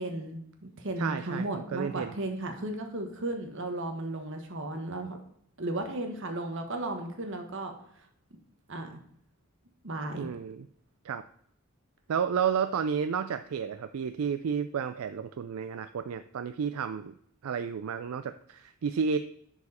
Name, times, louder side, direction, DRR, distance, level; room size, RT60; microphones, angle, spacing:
voice 1, 0.0-5.2 5.6-7.7 8.7-8.9 9.8-10.3, right 2 dB, 60° right, 5 dB, 1.3 m, -35 dB
voice 2, 1.0-2.1 10.2-10.7 11.0-11.2 12.1-17.1 17.4-19.2, right 7 dB, 80° right, 10 dB, 0.4 m, -31 dB
11.0 x 4.8 x 4.2 m, 0.66 s
head